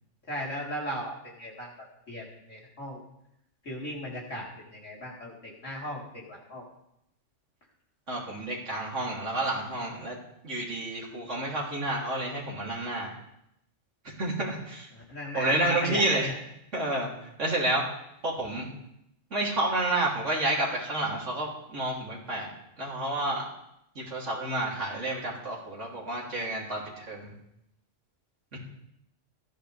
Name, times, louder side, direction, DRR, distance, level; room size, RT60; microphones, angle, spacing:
voice 1, 0.3-1.7 2.1-3.0 3.6-6.6 14.9-16.4, equal, 70° left, -4 dB, 4.3 m, -37 dB
voice 2, 8.1-10.2 10.4-13.1 14.2-14.9 15.3-16.3 16.7-17.1 17.4-17.8 18.2-18.7 19.3-22.5 22.8-23.5 24.0-27.3 28.5-28.6, right 2 dB, 70° right, -5 dB, 3.6 m, -30 dB
19.5 x 13.5 x 3.4 m, 0.80 s
omnidirectional pair, 1.3 m